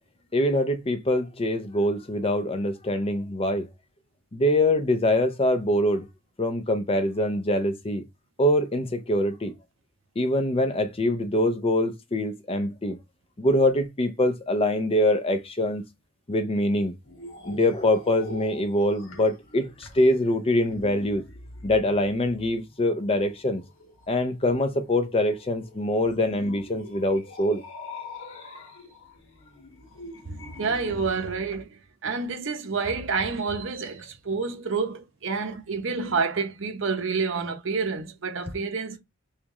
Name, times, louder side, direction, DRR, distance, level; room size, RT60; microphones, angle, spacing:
voice 1, 0.3-3.7 4.3-6.1 6.4-8.0 8.4-9.5 10.2-13.0 13.4-15.8 16.3-17.0 17.4-21.2 21.6-23.6 24.1-27.6, left 1 dB, 30° left, 0.5 m, -24 dB
sound 1, 17.0-31.6, left 2 dB, 80° left, 1.2 m, -45 dB
voice 2, 30.1-39.0, right 4 dB, 65° right, 0.8 m, -29 dB
3.3 x 3.0 x 3.6 m
head